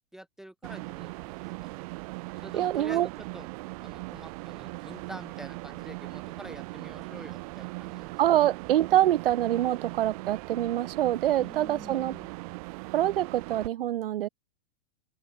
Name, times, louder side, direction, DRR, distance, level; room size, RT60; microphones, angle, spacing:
voice 1, 0.1-1.7 2.4-3.5 3.8-8.1 11.4-12.3, right 1 dB, ahead, 1.8 m, -47 dB
sound 1, 0.6-13.7, right 26 dB, 35° right, 1.9 m, -40 dB
voice 2, 2.5-3.1 8.2-12.1 12.9-14.3, right 12 dB, 65° right, 2.7 m, -25 dB
open air
supercardioid pair, 165°, 30 cm